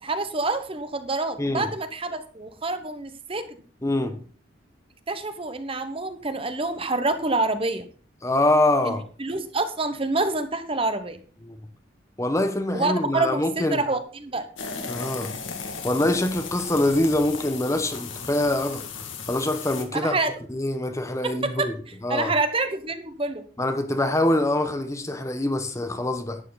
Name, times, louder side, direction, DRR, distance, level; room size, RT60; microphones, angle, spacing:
voice 1, 0.0-3.6 5.1-7.9 8.8-11.2 12.7-14.4 19.9-20.3 21.2-23.4, right 3 dB, 30° right, 1.0 m, -27 dB
voice 2, 3.8-4.2 8.2-9.0 11.4-11.6 12.2-13.8 14.9-15.3 15.8-18.8 19.3-20.2 20.5-21.7 22.0-22.3 23.6-26.4, left 1 dB, 15° left, 0.9 m, -24 dB
sound 1, 14.6-19.9, left 5 dB, 80° left, 2.0 m, -36 dB
11.0 x 9.1 x 4.0 m
head